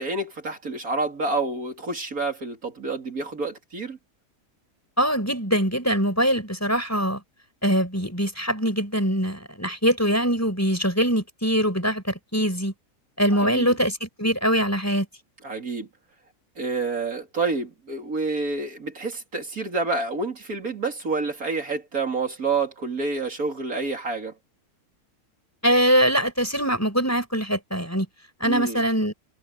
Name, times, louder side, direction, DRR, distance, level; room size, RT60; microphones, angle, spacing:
voice 1, 0.0-4.0 13.3-13.7 15.4-15.9 16.6-24.3 28.4-28.8, right 3 dB, 60° right, 3.3 m, -28 dB
voice 2, 5.0-7.2 7.6-12.7 13.2-15.1 25.6-28.1 28.4-29.1, equal, 10° left, 5.0 m, -23 dB
omnidirectional pair, 1.7 m